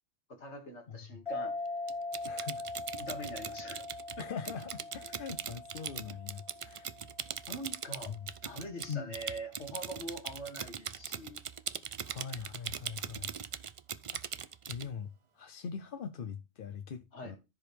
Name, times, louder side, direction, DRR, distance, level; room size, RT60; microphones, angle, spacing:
voice 1, 0.3-1.5 3.0-4.3 7.5-8.1 8.4-11.4 17.1-17.4, equal, 85° left, 2.3 m, -43 dB
sound 1, 1.3-8.3, left 3 dB, 25° left, 1.3 m, -42 dB
Typing, 1.9-14.9, right 7 dB, 55° right, 0.3 m, -41 dB
voice 2, 2.2-2.6 4.2-6.9 8.9-9.1 12.0-13.3 14.7-15.1 15.4-17.4, left 6 dB, 55° left, 0.8 m, -42 dB
14.0 x 5.1 x 3.3 m
omnidirectional pair, 1.1 m